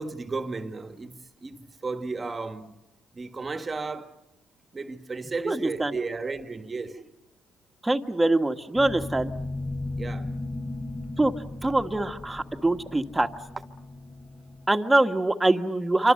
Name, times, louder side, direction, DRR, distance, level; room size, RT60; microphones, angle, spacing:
voice 1, 0.0-2.7 3.1-4.1 4.7-7.1 10.0-10.3, right 4 dB, 30° right, 1.6 m, -34 dB
voice 2, 5.4-5.9 7.8-9.3 11.2-11.3 11.6-13.3 14.7-16.1, right 2 dB, 15° right, 1.6 m, -23 dB
sound 1, 8.7-14.7, left 2 dB, 20° left, 4.3 m, -36 dB
28.0 x 25.5 x 6.6 m
cardioid pair, 85°, 0 cm